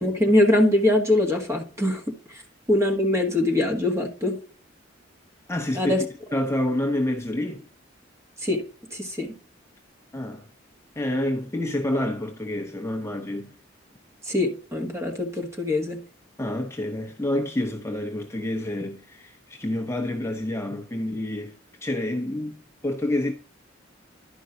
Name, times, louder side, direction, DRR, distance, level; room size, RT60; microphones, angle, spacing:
voice 1, 0.0-2.4 2.7-4.4 5.7-6.0 8.4-8.6 8.9-9.3 14.2-16.0, left 1 dB, 15° right, 1.6 m, -23 dB
voice 2, 5.5-6.1 6.3-7.6 10.1-10.5 11.0-13.5 16.4-23.3, left 1 dB, 15° left, 0.7 m, -28 dB
11.5 x 5.3 x 3.8 m
head